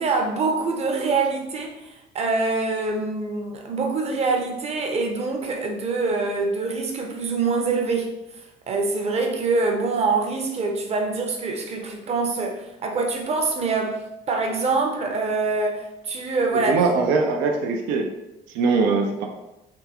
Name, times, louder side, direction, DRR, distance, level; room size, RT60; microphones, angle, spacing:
voice 1, 0.0-8.2 8.7-14.0 14.3-16.8, right 3 dB, 40° right, 2 dB, 0.6 m, -25 dB
voice 2, 16.5-18.1 18.5-19.3, right 4 dB, 90° right, 1 dB, 0.4 m, -21 dB
3.5 x 2.3 x 2.9 m, 0.92 s
cardioid pair, 110°, 17 cm